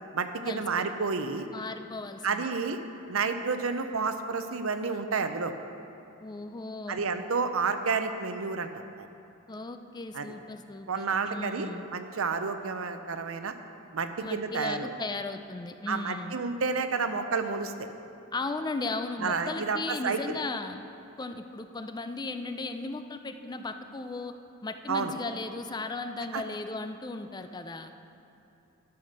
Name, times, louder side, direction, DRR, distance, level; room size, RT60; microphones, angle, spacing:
voice 1, 0.1-1.5 2.2-2.8 3.1-5.5 6.9-8.7 9.0-9.1 10.1-10.3 10.9-13.5 13.9-14.9 15.9-17.9 19.2-20.4 24.9-25.1 26.3-26.4, right 4 dB, 70° right, 8 dB, 0.6 m, -30 dB
voice 2, 1.5-2.5 6.2-7.0 9.5-11.9 14.2-16.4 18.3-20.8 21.2-24.3 24.6-27.9, left 3 dB, 20° left, 8 dB, 0.4 m, -36 dB
12.0 x 5.8 x 6.5 m, 2.8 s
head